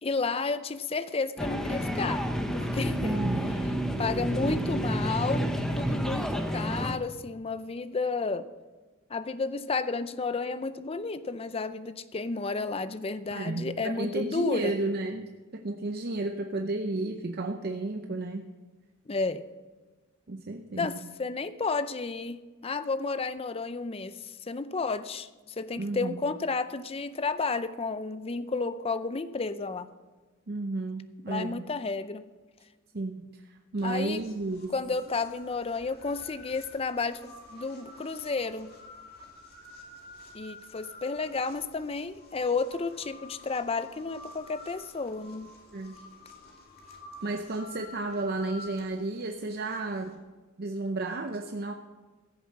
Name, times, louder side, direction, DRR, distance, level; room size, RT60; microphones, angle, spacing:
voice 1, 0.0-2.2 2.5-3.2 4.0-8.5 9.1-14.7 19.1-19.4 20.8-25.3 25.6-29.9 31.3-32.2 33.8-34.2 34.7-38.7 40.3-45.5, left 4 dB, 30° left, 13 dB, 0.5 m, -32 dB
sound 1, 1.4-6.9, equal, 5° left, 0.8 m, -29 dB
voice 2, 3.0-3.5 13.3-18.5 20.3-21.0 25.8-26.3 30.5-31.6 32.9-34.8 45.7-46.0 47.2-50.2 50.6-51.7, right 2 dB, 50° right, 5 dB, 0.7 m, -32 dB
sound 2, 33.8-50.1, left 1 dB, 50° left, 2.4 m, -50 dB
15.5 x 7.1 x 7.4 m, 1.3 s
head